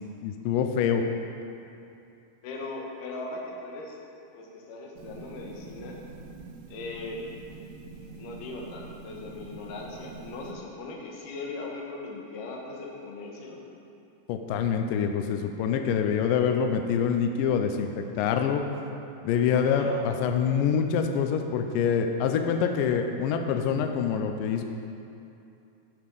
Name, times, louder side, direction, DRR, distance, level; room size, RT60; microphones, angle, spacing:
voice 1, 0.2-1.0 14.3-18.6 19.2-24.6, left 7 dB, 90° left, 5 dB, 1.9 m, -25 dB
voice 2, 2.4-4.0 4.3-6.0 6.7-7.2 8.0-13.6 19.5-20.0, left 3 dB, 65° left, -1 dB, 2.5 m, -39 dB
sound 1, 5.0-10.5, right 4 dB, 80° right, 2.6 m, -45 dB
13.5 x 4.9 x 5.3 m, 2.7 s
omnidirectional pair, 4.6 m